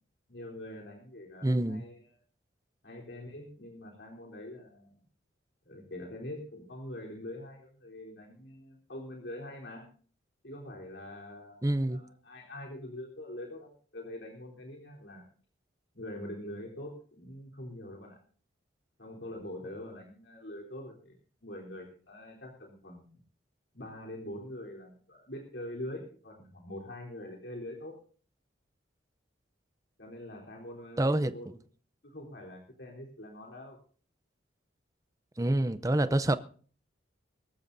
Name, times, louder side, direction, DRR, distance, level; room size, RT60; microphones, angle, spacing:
voice 1, 0.3-2.0 2.8-5.0 5.7-9.9 10.4-15.2 15.9-18.2 19.0-21.2 21.4-23.2 23.7-27.9 30.0-31.5 32.0-33.8, left 1 dB, 65° left, 3.7 m, -44 dB
voice 2, 1.4-1.8 11.6-12.0 31.0-31.3 35.4-36.4, right 1 dB, 15° right, 0.5 m, -27 dB
23.0 x 14.0 x 2.7 m
head